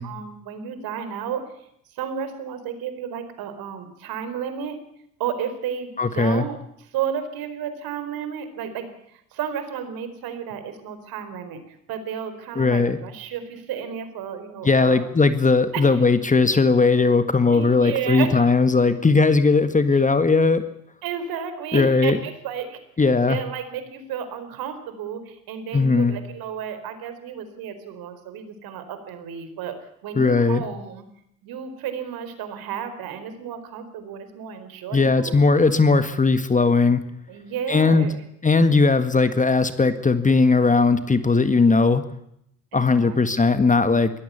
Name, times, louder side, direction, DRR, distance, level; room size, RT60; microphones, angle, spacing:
voice 1, 0.0-1.5 1.9-4.8 5.2-6.6 6.9-15.1 15.7-16.0 17.5-18.5 19.9-20.0 21.0-22.8 23.3-29.8 30.0-31.0 31.4-35.4 37.3-38.2 42.7-43.2, right 8 dB, 55° right, 10 dB, 4.5 m, -32 dB
voice 2, 6.0-6.5 12.6-13.0 14.6-20.6 21.7-22.2 23.0-23.4 25.7-26.2 30.2-30.6 34.9-37.0 37.7-38.1 38.4-42.0 42.7-44.1, left 4 dB, 20° left, 11 dB, 1.8 m, -18 dB
23.5 x 18.0 x 6.9 m, 0.74 s
figure-of-eight pair, 60°, 42 cm